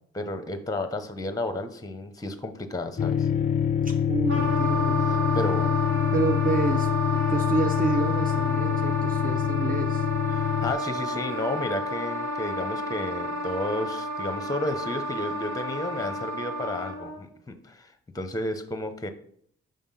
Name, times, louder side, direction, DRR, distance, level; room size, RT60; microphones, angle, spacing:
voice 1, 0.1-3.3 5.0-5.7 10.3-19.1, left 1 dB, 10° left, 8 dB, 0.8 m, -32 dB
sound 1, 3.0-10.7, left 9 dB, 25° left, 0.4 m, -25 dB
voice 2, 3.8-5.4 6.1-6.9 7.3-10.1, right 4 dB, 30° right, 5 dB, 0.6 m, -29 dB
Wind instrument woodwind instrument, 4.3-17.2, equal, 75° right, 2.9 m, -31 dB
5.4 x 3.6 x 5.6 m, 0.64 s
supercardioid pair, 40°, 29 cm